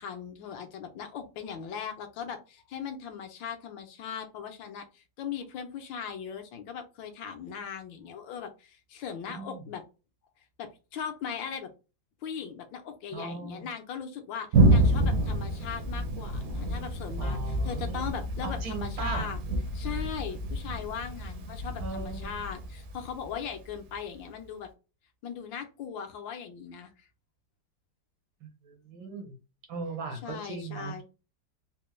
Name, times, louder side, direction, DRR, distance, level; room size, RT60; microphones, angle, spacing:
voice 1, 0.0-9.8 10.6-11.7 12.2-19.4 19.7-24.7 25.2-27.1 30.2-31.0, left 7 dB, 75° left, 6 dB, 1.4 m, -39 dB
voice 2, 9.3-9.6 13.1-13.7 17.2-18.1 18.4-19.3 21.8-22.3 28.4-29.3 29.7-31.0, right 3 dB, 80° right, 3 dB, 1.9 m, -38 dB
Thunder, 14.5-23.9, right 1 dB, 60° right, 1.0 m, -28 dB
4.1 x 2.2 x 3.1 m, 0.31 s
omnidirectional pair, 2.1 m